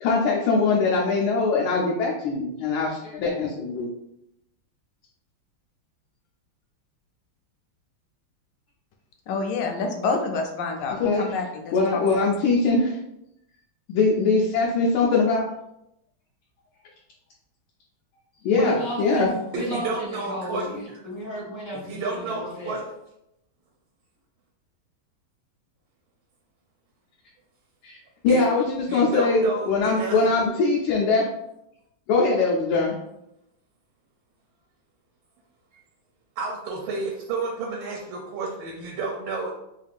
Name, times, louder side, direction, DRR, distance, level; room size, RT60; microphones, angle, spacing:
voice 1, 0.0-3.9 11.0-11.2 11.7-13.0 13.9-15.4 18.4-19.3 27.8-28.0 28.2-31.2 32.1-33.0, left 3 dB, 90° left, -2 dB, 1.4 m, -22 dB
voice 2, 9.3-12.3, left 4 dB, 75° left, 4 dB, 1.1 m, -28 dB
voice 3, 18.5-22.8, equal, 25° right, -6 dB, 0.6 m, -32 dB
voice 4, 19.5-20.7 21.7-22.8 28.3-28.4 28.9-30.2 36.4-39.5, right 3 dB, 80° right, -1 dB, 1.4 m, -31 dB
3.6 x 2.4 x 3.4 m, 0.83 s
omnidirectional pair, 2.2 m